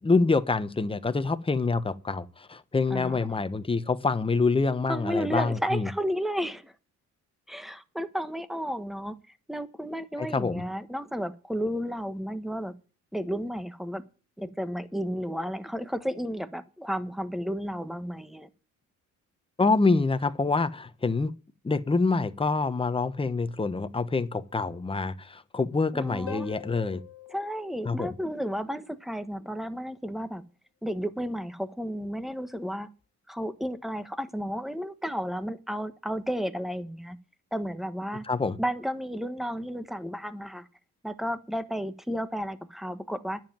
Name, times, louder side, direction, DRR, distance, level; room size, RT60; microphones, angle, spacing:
voice 1, 0.0-5.9 10.2-10.6 19.6-21.3 21.6-27.0 27.8-28.1 38.3-38.6, left 3 dB, 20° left, 1.1 m, -26 dB
voice 2, 2.9-3.4 4.9-6.7 7.5-9.2 9.5-12.8 13.1-14.0 14.4-18.5 25.9-26.5 27.3-30.4 30.8-32.9 33.3-37.2 37.5-38.2 38.6-40.7 41.0-43.4, equal, ahead, 1.3 m, -32 dB
Harp, 26.3-28.8 32.3-32.4, left 13 dB, 50° left, 1.3 m, -44 dB
10.5 x 7.5 x 8.9 m
cardioid pair, 90°, 30 cm